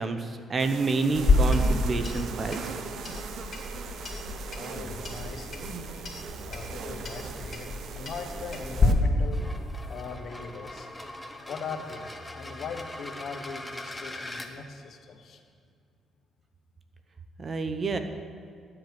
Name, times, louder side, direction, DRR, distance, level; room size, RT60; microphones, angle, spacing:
voice 1, 0.0-2.7 17.4-18.0, right 4 dB, 40° right, 8 dB, 0.9 m, -28 dB
sound 1, 0.6-8.9, right 5 dB, 70° right, 0.8 m, -39 dB
Clock, 1.1-8.9, left 3 dB, 40° left, 2.6 m, -29 dB
voice 2, 4.5-5.5 6.5-9.4 9.9-10.9 11.5-15.4, left 5 dB, 65° left, 5 dB, 1.2 m, -40 dB
sound 2, 9.2-14.5, left 1 dB, 10° left, 1.0 m, -41 dB
12.0 x 7.9 x 6.0 m, 2.2 s
cardioid pair, 90°, 0 cm